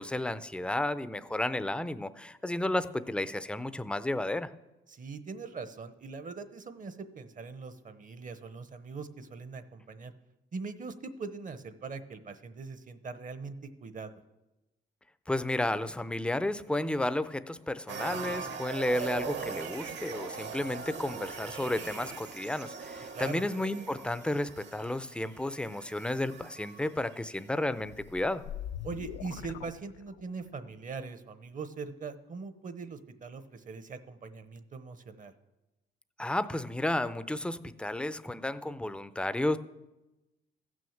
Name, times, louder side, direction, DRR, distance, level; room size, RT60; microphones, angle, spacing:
voice 1, 0.0-4.5 15.3-28.4 36.2-39.6, left 1 dB, 5° left, 13 dB, 0.5 m, -32 dB
voice 2, 4.9-10.1 10.5-13.6 13.8-14.1 23.1-23.4 28.8-35.3, right 4 dB, 40° right, 12 dB, 0.9 m, -41 dB
sound 1, 17.9-27.0 27.4-27.5, right 5 dB, 65° right, 1.4 m, -41 dB
sound 2, 27.8-30.5, left 11 dB, 90° left, 0.5 m, -42 dB
15.0 x 6.3 x 7.2 m, 1.0 s
cardioid pair, 90°, 20 cm